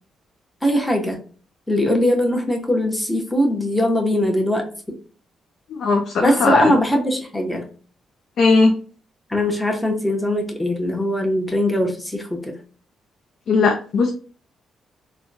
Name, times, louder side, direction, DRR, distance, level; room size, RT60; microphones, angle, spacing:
voice 1, 0.6-1.2 1.7-5.0 6.2-7.7 9.3-12.6, left 1 dB, 10° left, 1 dB, 0.9 m, -21 dB
voice 2, 5.7-6.7 8.4-8.8 13.5-14.1, left 4 dB, 70° left, 3 dB, 0.4 m, -18 dB
3.5 x 2.2 x 2.6 m, 0.40 s
supercardioid pair, 60°, 0 cm